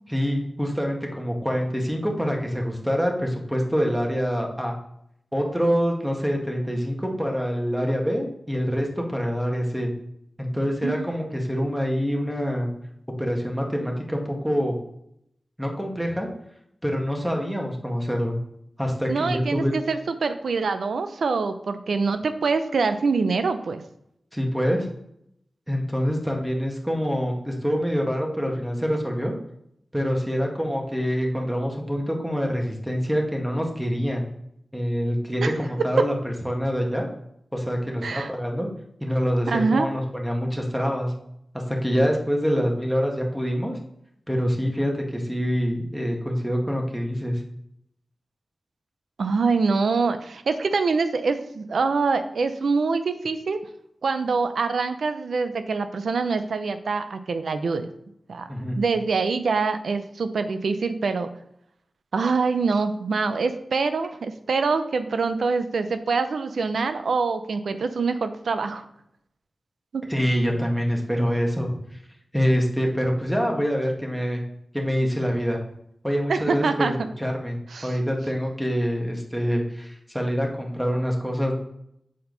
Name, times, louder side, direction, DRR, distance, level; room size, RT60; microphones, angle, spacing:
voice 1, 0.1-4.8 5.3-9.9 10.4-12.7 13.2-14.8 15.6-16.3 16.8-18.3 18.8-19.7 24.3-24.9 25.7-29.3 29.9-34.3 34.7-37.1 37.5-38.7 39.0-41.1 41.7-43.7 44.3-47.4 58.5-58.8 70.1-71.7 72.3-74.4 74.7-75.6 76.0-77.6 77.8-81.5, equal, 5° right, 0 dB, 1.7 m, -25 dB
voice 2, 19.1-23.8 35.4-35.5 36.0-36.1 38.0-38.3 39.5-39.9 49.2-53.6 54.0-57.9 58.3-58.5 58.7-61.3 62.1-68.8 69.9-70.0 76.3-77.1 77.7-77.9, right 4 dB, 85° right, 10 dB, 0.5 m, -25 dB
7.4 x 4.4 x 3.9 m, 0.75 s
cardioid pair, 50°, 0 cm